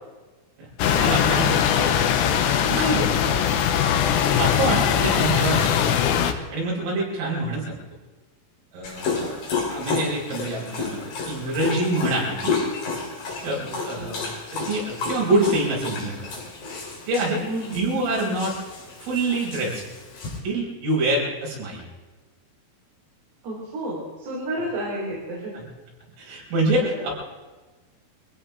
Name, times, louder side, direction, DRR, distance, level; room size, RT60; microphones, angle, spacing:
voice 1, 0.6-1.9 2.7-3.1 4.4-6.2 6.5-7.8 8.7-9.1 9.7-12.6 13.4-14.2 14.7-16.4 17.1-18.5 19.0-19.8 20.4-21.8 25.6-25.7 26.2-27.1, right 2 dB, 75° right, -4 dB, 7.6 m, -26 dB
sound 1, 0.8-6.3, left 9 dB, 85° left, 3.6 m, -21 dB
Dog, 8.8-20.4, left 4 dB, 45° left, 4.8 m, -31 dB
voice 2, 13.7-14.2 17.5-17.8 23.4-25.5 26.8-27.1, right 1 dB, 55° right, -6 dB, 5.5 m, -32 dB
24.5 x 16.5 x 3.5 m, 1.3 s
omnidirectional pair, 5.8 m